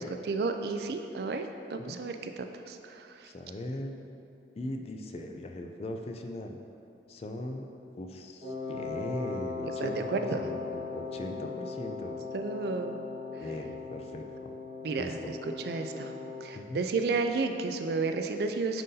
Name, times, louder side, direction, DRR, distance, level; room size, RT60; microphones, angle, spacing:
voice 1, 0.0-3.3 9.8-10.4 12.3-13.0 14.8-15.2 15.7-16.1 16.4-18.8, right 4 dB, 60° right, 6 dB, 0.3 m, -32 dB
voice 2, 3.2-4.0 4.6-6.6 7.1-7.7 8.0-12.2 13.4-14.5 15.0-15.3 16.5-16.8, left 1 dB, 35° left, 4 dB, 0.3 m, -39 dB
Wind instrument woodwind instrument, 8.4-16.5, left 4 dB, 40° right, 1.2 m, -39 dB
9.0 x 3.9 x 2.7 m, 2.7 s
head